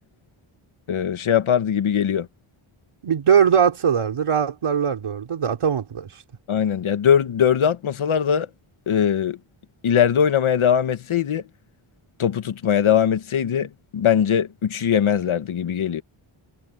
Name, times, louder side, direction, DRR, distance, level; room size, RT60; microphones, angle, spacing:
voice 1, 0.9-2.3 6.5-8.5 8.9-9.4 9.8-11.4 12.2-16.0, left 8 dB, 75° left, 1.5 m, -21 dB
voice 2, 3.0-6.1, right 7 dB, 80° right, 3.6 m, -20 dB
wide cardioid pair, 150°, 50 cm